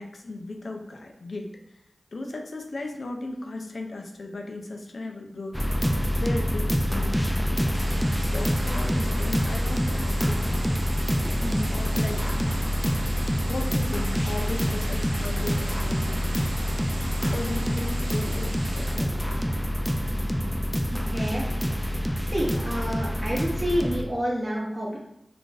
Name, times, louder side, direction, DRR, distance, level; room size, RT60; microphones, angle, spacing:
voice 1, 0.0-1.5 2.1-7.9 8.2-10.8 11.4-12.2 13.4-16.5 17.1-19.2, left 2 dB, 70° left, 3 dB, 0.4 m, -36 dB
sound 1, 5.5-24.0, equal, 5° left, 0.4 m, -26 dB
sound 2, 7.7-19.0, right 1 dB, 80° right, 0.6 m, -40 dB
voice 2, 20.1-20.5 20.9-21.5 22.3-25.0, equal, 35° right, -5 dB, 0.8 m, -29 dB
2.5 x 2.5 x 3.8 m, 0.80 s
cardioid pair, 45°, 0 cm